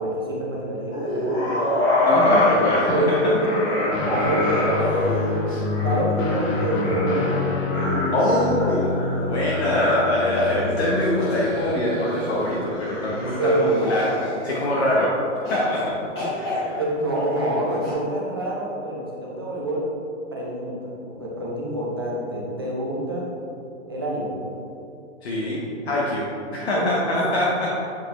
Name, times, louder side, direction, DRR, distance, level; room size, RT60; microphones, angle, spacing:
voice 1, 0.0-1.7 2.0-4.9 5.8-7.4 7.9-8.3 8.6-8.8 9.1-9.8 13.1-13.8 16.8-19.9 20.3-23.2 23.9-24.3 26.7-26.9, right 1 dB, 20° right, -5 dB, 0.5 m, -27 dB
sound 1, 0.9-14.9 15.4-15.9 16.1-17.9, left 1 dB, 20° left, 1.3 m, -26 dB
voice 2, 2.0-3.2 5.5-5.6 8.1-8.9 9.3-14.1 14.4-16.0 16.3-16.8 25.2-26.2 26.5-27.7, left 1 dB, 55° left, -5 dB, 1.0 m, -24 dB
Guitar, 3.9-11.6, left 3 dB, 90° left, 1.2 m, -27 dB
7.6 x 4.1 x 3.2 m, 2.8 s
hypercardioid pair, 175°, 38 cm